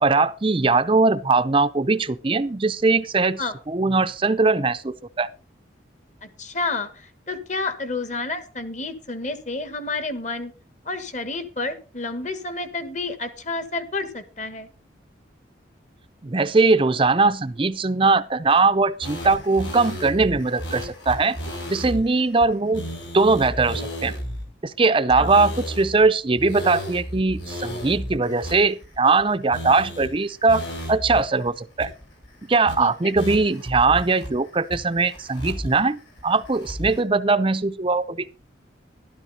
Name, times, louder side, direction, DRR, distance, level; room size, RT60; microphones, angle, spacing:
voice 1, 0.0-5.3 16.2-21.4 21.7-22.9 23.1-24.1 24.6-31.9 32.5-38.3, right 3 dB, 25° right, 0.5 m, -20 dB
voice 2, 6.2-10.5 10.8-14.7 25.2-25.3 32.8-33.1, left 3 dB, 40° left, 1.5 m, -30 dB
sound 1, 19.0-22.0 22.4-22.5 22.7-24.4 25.1-26.0 26.4-29.2 29.5-30.1 30.5-31.2 31.5-31.6 31.8-32.3 32.7-32.8 33.2-34.3 34.7-35.8 36.2-37.0, equal, 70° left, 7.2 m, -33 dB
12.5 x 12.5 x 4.1 m
head